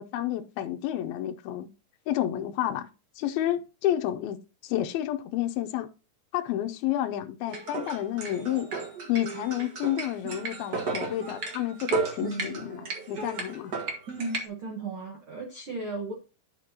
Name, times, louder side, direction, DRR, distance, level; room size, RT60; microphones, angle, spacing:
voice 1, 0.0-1.7 2.1-2.9 3.2-4.4 4.6-5.9 6.3-8.7 9.1-13.7, left 12 dB, 80° left, 2.5 m, -30 dB
sound 1, 7.5-14.5, right 3 dB, 90° right, 0.8 m, -34 dB
voice 2, 14.2-16.1, right 3 dB, 60° right, 1.4 m, -35 dB
10.5 x 6.6 x 2.8 m
omnidirectional pair, 4.4 m